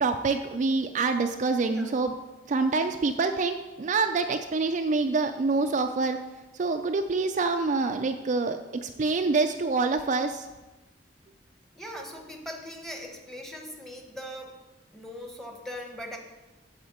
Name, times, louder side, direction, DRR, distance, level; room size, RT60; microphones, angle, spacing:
voice 1, 0.0-2.2 2.5-6.2 6.5-10.5, right 3 dB, 45° right, 6 dB, 0.4 m, -26 dB
voice 2, 11.7-14.6 14.9-16.2, equal, ahead, 2 dB, 1.0 m, -40 dB
8.4 x 4.4 x 7.1 m, 1.1 s
head